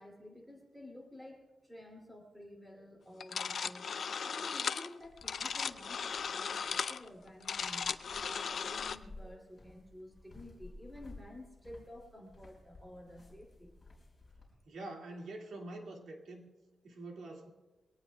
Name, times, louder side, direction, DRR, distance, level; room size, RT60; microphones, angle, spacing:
voice 1, 0.0-3.9 4.2-8.0 8.2-13.8, left 1 dB, ahead, 0 dB, 2.7 m, -51 dB
sound 1, 3.2-9.0, left 6 dB, 45° left, 0.4 m, -37 dB
sound 2, 5.0-14.5, left 2 dB, 20° left, 4.5 m, -56 dB
voice 2, 14.7-16.5 16.8-17.5, right 2 dB, 65° right, 1 dB, 2.0 m, -45 dB
23.0 x 18.0 x 2.3 m, 1.2 s
wide cardioid pair, 170°, 0 cm